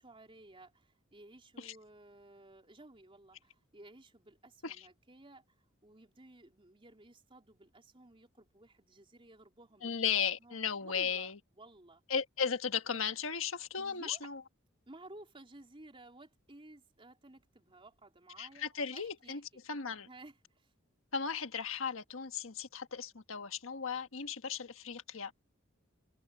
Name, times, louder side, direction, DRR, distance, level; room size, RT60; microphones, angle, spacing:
voice 1, 0.0-5.4 5.8-10.1 10.4-12.0 13.7-14.3 14.9-18.7 18.9-19.4 20.1-20.7, right 2 dB, 25° right, 3.8 m, -56 dB
voice 2, 9.8-11.4 12.1-14.4 18.4-19.4 19.7-20.1 21.1-25.3, left 6 dB, 75° left, 1.5 m, -36 dB
head